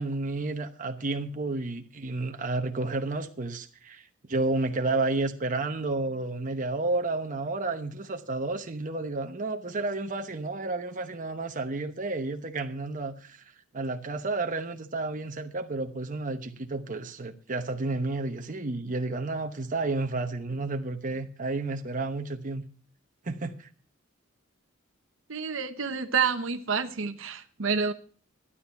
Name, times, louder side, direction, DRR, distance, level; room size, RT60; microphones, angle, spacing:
voice 1, 0.0-13.4 13.7-22.6 23.2-23.7, right 2 dB, 40° right, 1.0 m, -31 dB
voice 2, 25.3-27.9, right 5 dB, 70° right, 1.0 m, -28 dB
12.5 x 10.0 x 5.8 m
head